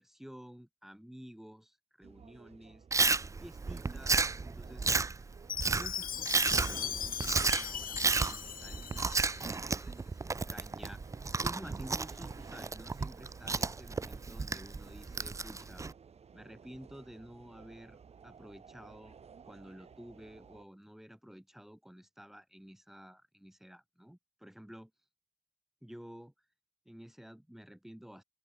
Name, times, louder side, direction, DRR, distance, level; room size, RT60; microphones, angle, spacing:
voice 1, 0.0-2.8 3.4-4.9 5.6-11.0 11.4-15.9 16.3-19.2 19.5-24.9 25.8-26.3 26.9-28.2, equal, ahead, 2.5 m, -51 dB
sound 1, 2.0-20.7, right 6 dB, 45° right, 2.2 m, -57 dB
Chewing mastication, 2.9-15.9, right 4 dB, 20° right, 0.5 m, -32 dB
Chime, 5.5-9.6, left 9 dB, 80° left, 2.5 m, -39 dB
open air
wide cardioid pair, 150°, 14 cm